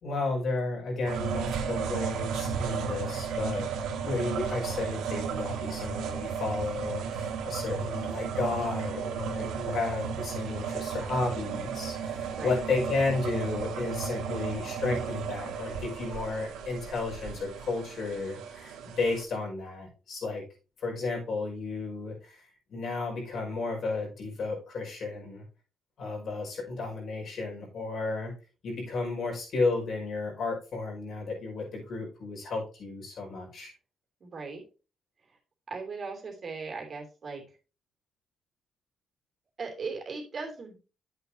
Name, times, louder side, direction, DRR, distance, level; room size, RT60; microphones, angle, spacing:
voice 1, 0.0-3.7 4.0-20.5 20.8-22.4 22.7-25.5 26.0-28.3 28.6-33.7, left 3 dB, 60° left, 0 dB, 5.3 m, -33 dB
sound 1, 1.0-19.2, right 6 dB, 85° right, 1.5 m, -34 dB
voice 2, 34.2-34.6 35.7-37.4 39.6-40.8, right 4 dB, 45° right, 2 dB, 3.1 m, -38 dB
9.0 x 8.2 x 2.8 m, 0.33 s
cardioid pair, 90°, 0 cm